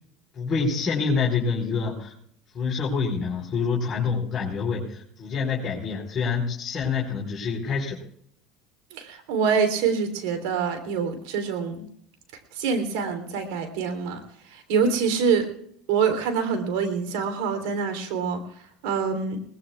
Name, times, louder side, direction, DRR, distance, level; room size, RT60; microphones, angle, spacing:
voice 1, 0.3-2.1 2.5-8.0, left 5 dB, 35° left, -4 dB, 4.8 m, -26 dB
voice 2, 8.9-11.9 12.5-15.5 15.9-19.4, right 6 dB, 75° right, 6 dB, 3.4 m, -26 dB
21.0 x 20.0 x 2.4 m, 0.68 s
hypercardioid pair, 90°, 0 cm